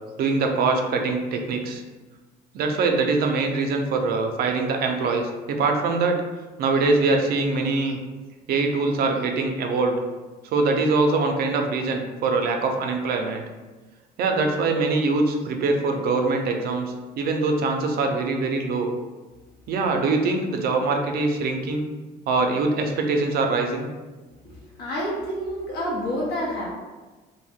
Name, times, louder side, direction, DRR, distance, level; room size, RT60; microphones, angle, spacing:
voice 1, 0.2-1.8 2.5-6.2 6.6-8.0 8.5-10.0 10.4-13.4 14.2-18.9 19.7-21.8 22.3-23.9, right 3 dB, 65° right, 3 dB, 0.5 m, -23 dB
voice 2, 24.4-26.7, equal, 75° left, -4 dB, 0.7 m, -29 dB
2.5 x 2.2 x 3.5 m, 1.3 s
cardioid pair, 110°, 17 cm